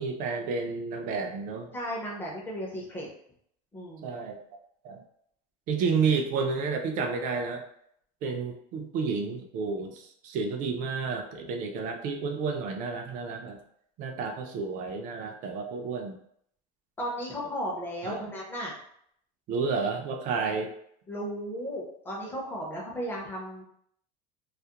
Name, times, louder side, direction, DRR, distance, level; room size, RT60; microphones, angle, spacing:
voice 1, 0.0-1.7 4.0-4.4 4.8-5.0 5.7-7.6 8.2-13.6 14.0-16.2 18.0-18.2 19.5-20.7, right 5 dB, 40° right, 3 dB, 0.4 m, -31 dB
voice 2, 1.7-3.1 3.7-4.2 17.0-18.7 21.1-23.6, equal, 10° left, -3 dB, 0.6 m, -35 dB
2.3 x 2.1 x 2.8 m, 0.69 s
cardioid pair, 155°, 20 cm